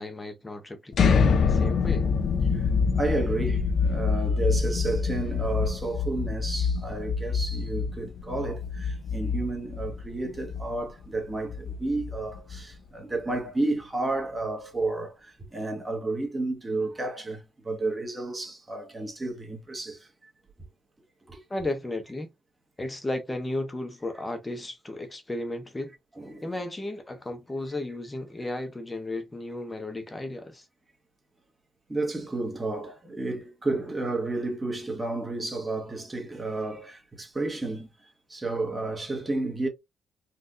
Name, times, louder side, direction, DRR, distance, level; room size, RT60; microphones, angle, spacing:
voice 1, 0.0-2.1 21.5-22.3 22.8-25.9 26.4-30.7, left 2 dB, 15° left, 0.8 m, -34 dB
sound 1, 0.9-12.8, left 5 dB, 60° left, 0.5 m, -26 dB
voice 2, 2.5-20.3 21.3-21.4 26.2-26.5 31.9-37.9 38.3-39.7, right 2 dB, 20° right, 1.4 m, -31 dB
4.1 x 2.6 x 2.5 m
cardioid pair, 90°, 0 cm